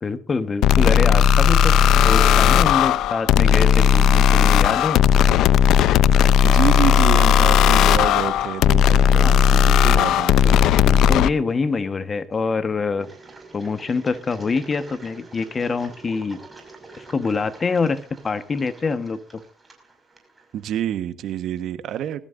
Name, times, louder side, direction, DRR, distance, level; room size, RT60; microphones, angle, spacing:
voice 1, 0.0-5.0 9.2-9.6 10.5-13.1 13.5-16.4 17.0-19.4, left 4 dB, 35° left, 12 dB, 1.3 m, -25 dB
sound 1, 0.6-11.3, left 8 dB, 75° left, 0.6 m, -16 dB
voice 2, 6.4-10.5 20.5-22.2, right 10 dB, 65° right, 12 dB, 1.3 m, -27 dB
Engine, 13.0-20.8, right 3 dB, 15° right, 5.9 m, -46 dB
21.5 x 15.0 x 2.6 m, 0.35 s
cardioid pair, 90°, 0 cm